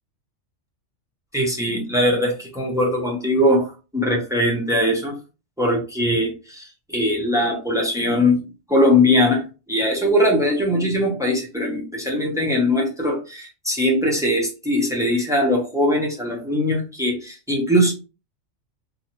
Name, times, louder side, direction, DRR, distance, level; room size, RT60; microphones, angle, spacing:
voice 1, 1.3-3.7 3.9-5.2 5.6-8.4 8.7-17.9, left 1 dB, 5° right, 0 dB, 0.4 m, -21 dB
2.7 x 2.2 x 2.8 m, 0.32 s
omnidirectional pair, 1.3 m